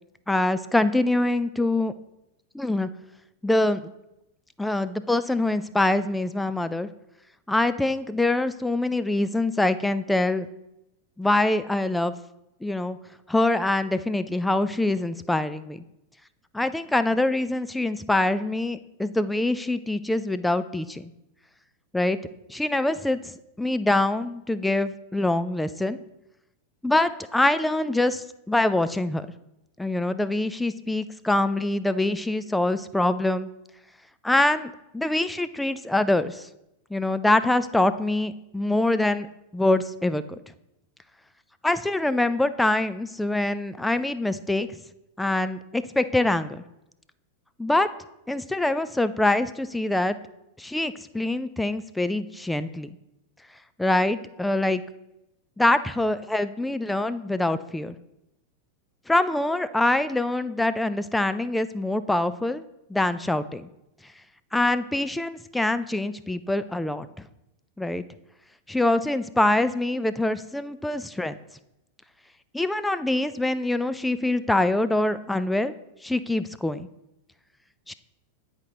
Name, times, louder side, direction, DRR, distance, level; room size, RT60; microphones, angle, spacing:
voice 1, 0.3-1.9 2.5-2.9 3.4-3.9 4.6-6.9 7.5-10.5 11.2-12.1 12.6-13.0 13.3-15.8 16.5-21.1 21.9-22.2 22.5-23.2 23.6-26.0 26.8-29.3 29.8-33.5 34.2-36.5 36.9-39.3 39.5-40.4 41.6-44.7 45.2-46.6 47.6-47.9 48.3-50.2 50.6-52.9 53.8-54.8 55.6-58.0 59.1-62.6 62.9-63.7 64.5-67.1 67.8-68.0 68.7-71.4 72.5-75.7 76.0-76.9 77.9-78.0, left 2 dB, 5° left, 12 dB, 0.3 m, -24 dB
9.7 x 4.4 x 3.8 m, 0.87 s
figure-of-eight pair, 90°, 0 cm